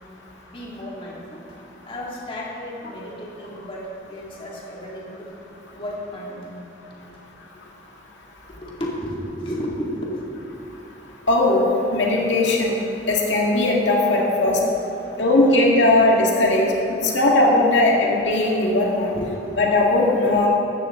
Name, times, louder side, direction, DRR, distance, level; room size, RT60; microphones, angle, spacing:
voice 1, 0.5-1.4 1.8-5.3 5.7-6.7 7.1-7.2 8.5-10.3 19.1-19.3, equal, 30° left, -4 dB, 2.4 m, -33 dB
voice 2, 11.3-11.6 11.9-12.7 13.1-14.6 15.2-16.7 17.1-19.1 19.6-20.5, left 2 dB, 90° left, -2 dB, 2.0 m, -18 dB
15.0 x 13.0 x 3.8 m, 2.9 s
head